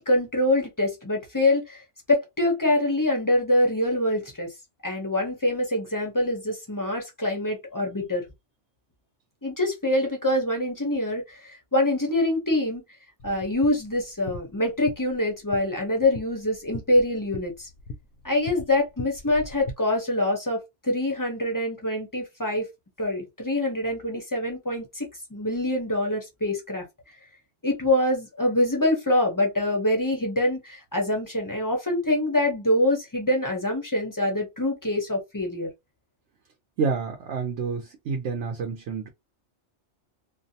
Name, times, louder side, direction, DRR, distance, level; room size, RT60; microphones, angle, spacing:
voice 1, 0.0-1.8 2.1-4.5 4.8-8.2 9.4-12.8 13.2-17.7 18.2-22.7 23.0-26.8 27.6-35.7, left 1 dB, 25° left, 0.5 m, -25 dB
sound 1, 13.2-19.7, left 3 dB, 65° left, 0.8 m, -41 dB
voice 2, 36.8-39.1, right 5 dB, 75° right, 0.9 m, -29 dB
2.6 x 2.0 x 2.7 m
omnidirectional pair, 1.2 m